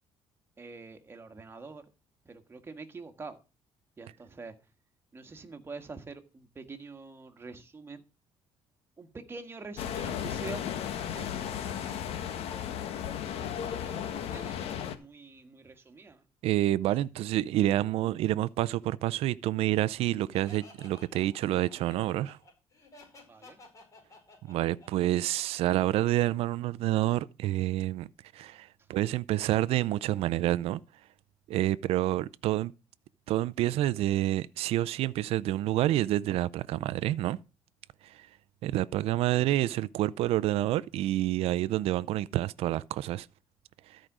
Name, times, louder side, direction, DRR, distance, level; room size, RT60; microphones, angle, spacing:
voice 1, 0.6-1.9 2.2-3.4 4.0-4.5 5.1-8.0 9.0-10.6 11.1-12.2 13.2-16.2 23.3-23.6, right 4 dB, 25° right, 1.6 m, -46 dB
sound 1, 9.8-15.0, left 9 dB, 75° left, 1.3 m, -35 dB
voice 2, 16.4-22.4 24.5-28.1 28.3-30.8 31.5-32.7 33.3-37.4 38.0-38.3 38.6-43.3 43.9-44.0, right 14 dB, 75° right, 0.5 m, -28 dB
Laughter, 20.3-26.0, left 2 dB, 30° left, 4.8 m, -54 dB
13.5 x 5.1 x 6.1 m
cardioid pair, 125°, 10 cm